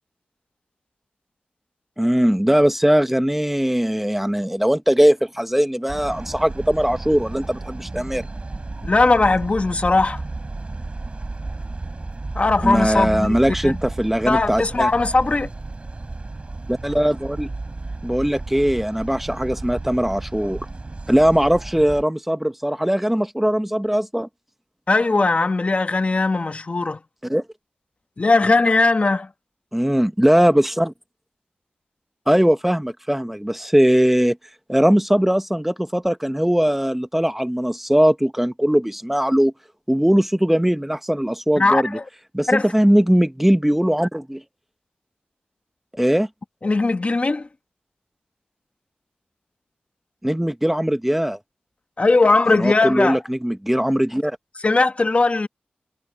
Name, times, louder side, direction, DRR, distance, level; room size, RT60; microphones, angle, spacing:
voice 1, 2.0-8.3 12.6-14.9 16.7-17.5 18.0-20.6 21.1-24.3 27.2-27.4 29.7-30.9 32.3-34.4 34.7-39.5 39.9-42.0 42.3-44.4 45.9-46.3 50.2-51.4 52.5-54.4, equal, 5° right, 1.2 m, -20 dB
sound 1, 5.9-22.0, right 2 dB, 35° right, 7.8 m, -33 dB
voice 2, 8.8-10.2 12.3-13.3 13.6-13.8 14.3-15.5 24.9-27.0 28.2-29.3 41.6-42.0 42.5-42.7 46.6-47.5 52.0-53.2 54.6-55.5, left 3 dB, 40° left, 1.2 m, -19 dB
wide cardioid pair, 90°, 3 cm